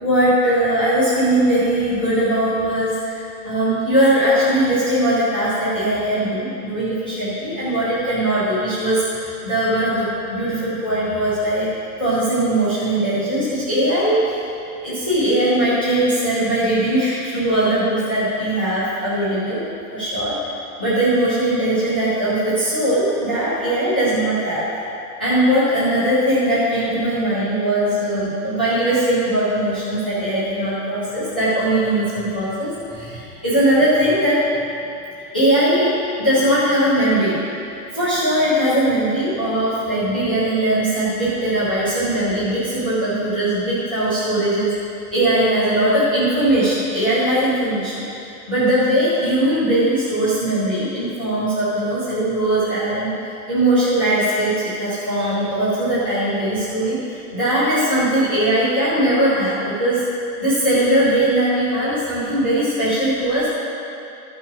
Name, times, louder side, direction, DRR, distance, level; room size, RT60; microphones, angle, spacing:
voice 1, 0.0-11.7 12.0-14.4 14.8-19.6 19.9-20.3 20.8-24.7 25.2-34.5 35.3-37.4 37.9-44.7 45.1-48.0 48.5-53.1 53.5-60.0 60.4-63.5, right 1 dB, 5° left, -15 dB, 0.4 m, -20 dB
13.5 x 5.5 x 5.0 m, 2.6 s
supercardioid pair, 175°, 47 cm